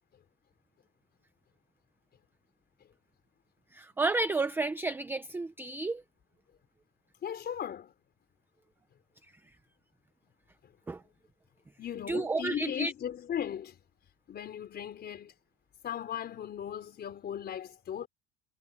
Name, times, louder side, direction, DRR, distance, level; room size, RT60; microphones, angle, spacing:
voice 1, 3.7-6.0 10.9-11.0 12.1-12.9, right 3 dB, 5° right, 0.6 m, -31 dB
voice 2, 7.2-7.9 11.8-13.8 14.3-15.3 15.8-18.1, left 9 dB, 30° left, 4.5 m, -37 dB
cardioid pair, 160°, 35 cm